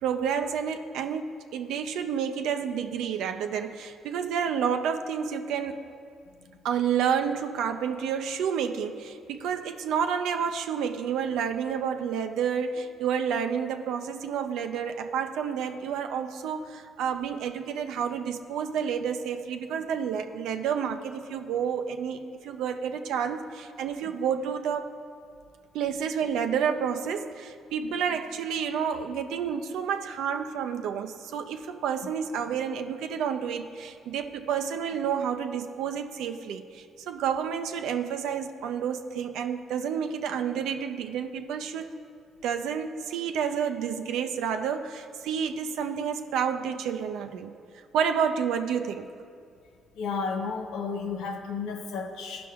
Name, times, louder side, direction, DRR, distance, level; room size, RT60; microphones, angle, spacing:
voice 1, 0.0-5.8 6.6-24.9 25.7-42.0 42.4-47.5 47.9-49.1, right 7 dB, 90° right, 7 dB, 0.5 m, -30 dB
voice 2, 50.0-52.5, left 5 dB, 90° left, 4 dB, 0.7 m, -32 dB
15.0 x 6.0 x 2.4 m, 2.3 s
cardioid pair, 90°, 0 cm